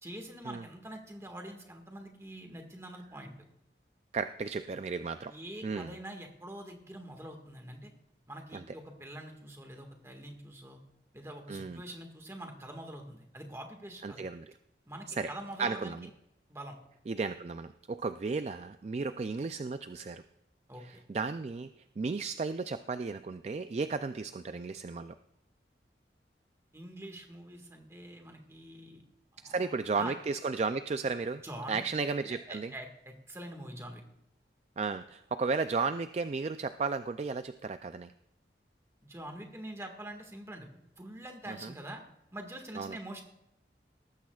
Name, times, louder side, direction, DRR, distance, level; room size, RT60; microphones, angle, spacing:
voice 1, 0.0-3.3 5.3-7.9 8.3-10.8 11.1-14.3 14.8-16.0 16.5-16.8 20.7-21.0 26.7-29.0 29.3-30.1 31.4-31.8 32.5-34.0 39.0-40.7 41.0-42.0 42.3-43.2, right 1 dB, 15° right, 3 dB, 1.7 m, -45 dB
voice 2, 4.1-5.3 5.6-5.9 8.5-8.6 11.5-11.8 14.0-14.5 15.1-15.3 15.6-16.1 17.1-20.2 20.8-25.1 29.4-31.4 31.7-32.7 34.8-38.1 41.5-41.7 42.8-43.0, right 4 dB, 35° right, 10 dB, 0.3 m, -34 dB
18.5 x 14.5 x 2.4 m, 0.83 s
head